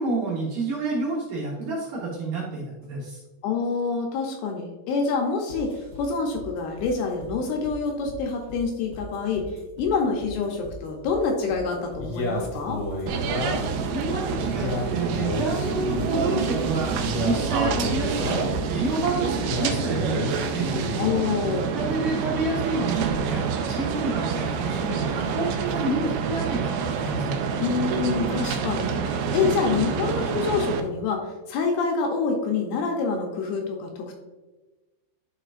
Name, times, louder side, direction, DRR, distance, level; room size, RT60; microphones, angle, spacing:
voice 1, 0.0-3.2 13.9-18.4 18.7-20.7 21.6-27.4, right 3 dB, 65° right, -5 dB, 2.3 m, -29 dB
voice 2, 3.4-9.5 9.8-12.8 21.0-21.7 27.6-34.1, left 5 dB, 75° left, 1 dB, 2.5 m, -27 dB
sound 1, 5.5-19.1, equal, 40° right, 1.4 m, -41 dB
Male speech man speaking, 12.0-13.8 14.4-16.4 16.9-18.6 19.3-21.3, left 2 dB, 55° left, 1.8 m, -31 dB
sound 2, 13.1-30.8, right 5 dB, 85° right, 2.2 m, -27 dB
11.0 x 4.8 x 2.5 m, 1.2 s
omnidirectional pair, 4.9 m